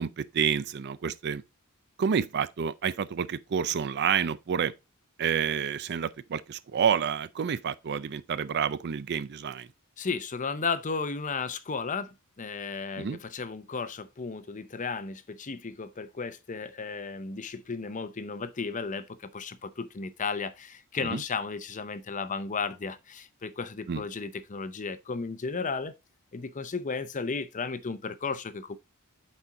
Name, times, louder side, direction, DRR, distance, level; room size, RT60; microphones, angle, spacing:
voice 1, 0.0-1.4 2.0-4.7 5.2-9.7 13.0-13.2 21.0-21.2 23.9-24.0, right 7 dB, 50° right, 0.4 m, -29 dB
voice 2, 10.0-25.9 26.3-28.8, left 4 dB, 35° left, 0.6 m, -34 dB
8.2 x 4.3 x 3.7 m
head